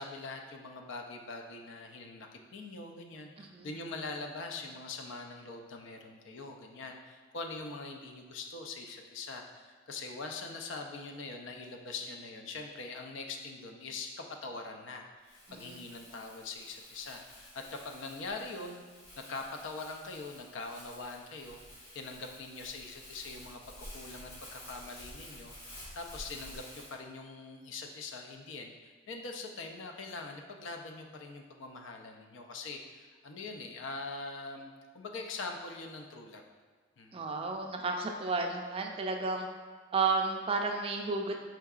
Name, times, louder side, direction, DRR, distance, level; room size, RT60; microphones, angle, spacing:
voice 1, 0.0-18.8 19.2-21.6 21.9-36.4 37.0-37.3, left 3 dB, 75° left, 3 dB, 0.4 m, -43 dB
voice 2, 3.4-3.7 15.5-15.8 37.1-39.5 39.9-41.3, right 4 dB, 30° right, 3 dB, 0.3 m, -32 dB
Crumpling crinkling, 15.2-26.9, equal, 55° left, 1.2 m, -51 dB
4.5 x 3.7 x 2.4 m, 1.4 s
head